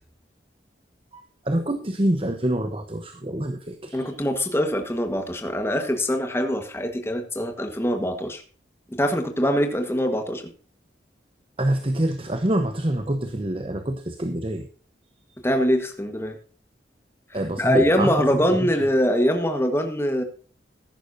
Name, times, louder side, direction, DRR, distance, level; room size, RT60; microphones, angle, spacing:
voice 1, 1.1-4.1 11.6-14.7 17.3-18.5, right 1 dB, 30° right, 8 dB, 0.9 m, -26 dB
voice 2, 3.9-8.4 8.9-10.5 15.4-16.4 17.3-20.2, equal, 15° left, 6 dB, 1.4 m, -23 dB
14.5 x 11.0 x 2.7 m, 0.41 s
head